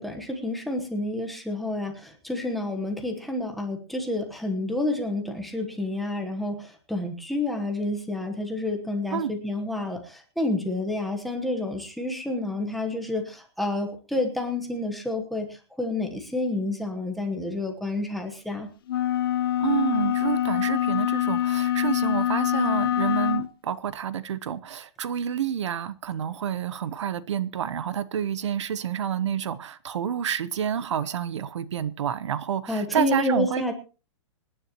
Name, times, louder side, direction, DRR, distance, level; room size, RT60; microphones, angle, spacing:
voice 1, 0.0-15.5 15.8-18.7 32.7-33.7, left 2 dB, ahead, 1.1 m, -29 dB
sound 1, 18.9-23.5, left 11 dB, 50° left, 0.7 m, -25 dB
voice 2, 19.6-33.6, right 9 dB, 70° right, 1.0 m, -29 dB
26.0 x 10.0 x 3.0 m
hypercardioid pair, 180°, 16 cm